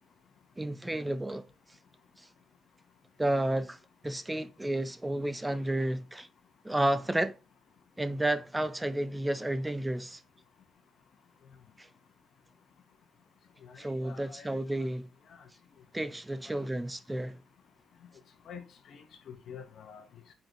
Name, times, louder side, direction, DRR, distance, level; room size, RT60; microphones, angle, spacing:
voice 1, 0.6-1.5 2.2-2.3 3.2-6.3 6.6-7.4 8.0-10.2 11.8-11.9 13.8-15.1 15.9-17.4, right 1 dB, 10° right, 0.4 m, -31 dB
voice 2, 13.6-14.5 15.3-15.4 16.4-16.8 18.5-18.6 18.9-20.1, left 7 dB, 65° left, 0.9 m, -48 dB
3.9 x 3.8 x 2.9 m
cardioid pair, 90°, 0 cm